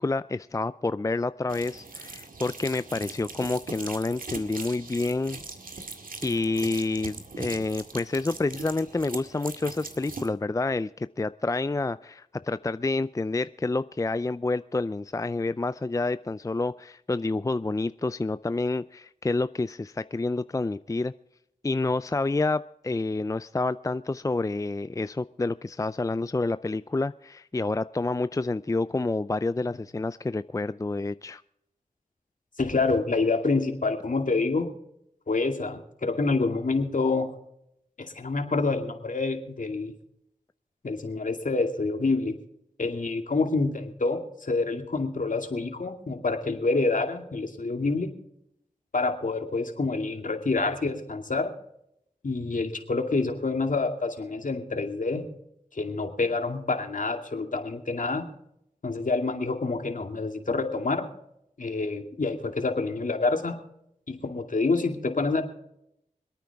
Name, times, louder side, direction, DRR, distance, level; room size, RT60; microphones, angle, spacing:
voice 1, 0.0-5.4 6.2-21.1 21.6-31.4, left 3 dB, 20° left, 15 dB, 0.4 m, -28 dB
sound 1, 1.5-10.3, right 3 dB, 70° right, 2.0 m, -40 dB
voice 2, 32.6-34.7 35.3-37.3 38.0-39.9 40.8-42.4 42.8-48.1 48.9-51.5 52.2-55.3 55.7-58.3 58.8-61.1 61.6-63.6 64.1-65.4, left 3 dB, 65° left, 5 dB, 2.4 m, -27 dB
26.5 x 9.1 x 3.5 m, 0.77 s
cardioid pair, 40°, 15 cm